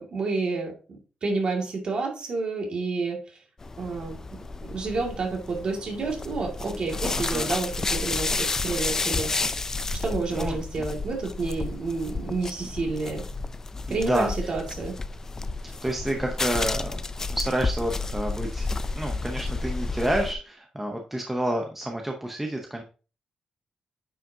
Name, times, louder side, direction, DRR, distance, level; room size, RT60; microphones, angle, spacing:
voice 1, 0.0-3.2 3.8-4.2 4.6-9.3 10.0-13.2 13.9-14.9, right 3 dB, 45° right, 0 dB, 2.1 m, -29 dB
sound 1, 3.6-20.3, left 3 dB, 20° left, 0.3 m, -31 dB
voice 2, 13.9-14.5 15.6-17.0 17.3-18.7 19.0-22.8, right 1 dB, 10° right, 2 dB, 0.7 m, -29 dB
9.0 x 5.2 x 2.7 m, 0.35 s
wide cardioid pair, 180°, 2 cm